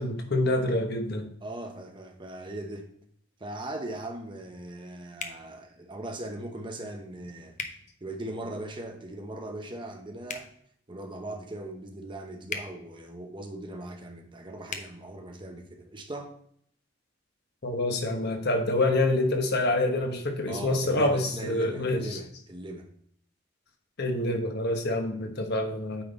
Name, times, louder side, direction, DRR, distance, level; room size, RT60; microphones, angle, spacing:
voice 1, 0.0-1.3 17.6-22.2 24.0-26.0, left 2 dB, 55° left, 4 dB, 1.1 m, -27 dB
voice 2, 1.4-2.9 3.4-7.6 8.0-10.5 10.9-16.3 20.5-22.9, right 1 dB, 25° right, 4 dB, 0.8 m, -39 dB
sound 1, 5.2-5.4 7.5-7.7 10.2-10.5 12.5-12.7 14.7-14.9, left 5 dB, 40° left, 0.7 m, -35 dB
8.8 x 3.9 x 3.9 m, 0.66 s
head